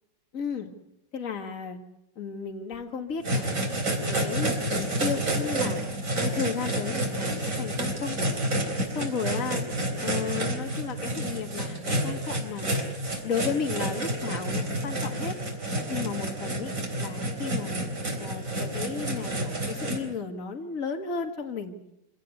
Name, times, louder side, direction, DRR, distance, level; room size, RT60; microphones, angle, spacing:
voice 1, 0.3-0.7 1.1-1.8 2.2-3.5 4.1-5.8 6.2-8.2 8.9-9.6 10.0-12.7 13.2-15.4 15.9-17.8 18.2-21.7, left 6 dB, 50° left, 4 dB, 2.1 m, -34 dB
sound 1, 3.2-20.0, right 1 dB, 45° right, 4.3 m, -29 dB
25.5 x 17.0 x 8.4 m, 0.84 s
omnidirectional pair, 1.9 m